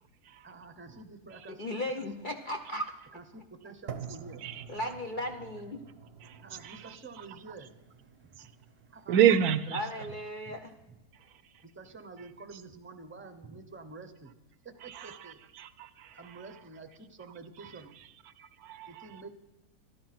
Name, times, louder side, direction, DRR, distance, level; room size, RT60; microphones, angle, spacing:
voice 1, 0.4-2.3 3.1-4.4 4.8-5.0 6.4-9.2 10.4-10.6 10.9-11.0 11.6-14.3 14.6-15.4 16.1-17.9 18.9-19.3, right 3 dB, 10° right, 7 dB, 0.6 m, -49 dB
voice 2, 1.5-2.9 4.7-5.8 9.7-10.7, left 1 dB, 45° left, 3 dB, 0.6 m, -36 dB
sound 1, 3.9-11.9, right 7 dB, 45° right, 0.9 m, -49 dB
voice 3, 9.1-9.8 14.8-15.2 15.6-16.2 18.4-19.1, right 9 dB, 70° right, 13 dB, 1.1 m, -27 dB
13.0 x 11.5 x 6.0 m, 0.99 s
omnidirectional pair, 1.7 m